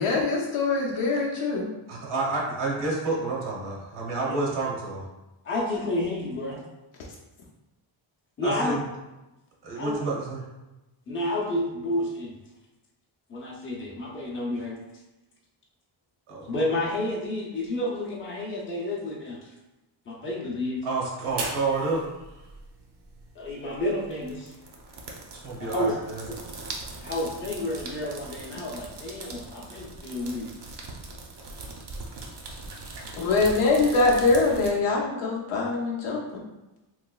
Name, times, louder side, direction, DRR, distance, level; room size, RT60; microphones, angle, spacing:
voice 1, 0.0-1.7 33.2-36.4, left 3 dB, 85° left, -3 dB, 0.6 m, -23 dB
voice 2, 1.9-5.0 8.4-8.8 9.6-10.4 16.3-16.5 20.8-22.0 25.4-26.2, right 3 dB, 75° right, -3 dB, 1.0 m, -29 dB
voice 3, 5.4-6.6 8.4-8.8 9.7-10.0 11.1-12.4 13.3-14.8 16.4-19.5 20.1-20.9 23.3-24.5 25.7-26.0 27.0-30.5, left 1 dB, 25° left, -4 dB, 0.6 m, -30 dB
sound 1, 21.2-34.7, right 3 dB, 55° right, 0.6 m, -40 dB
3.2 x 2.9 x 2.3 m, 1.0 s
wide cardioid pair, 150°, 49 cm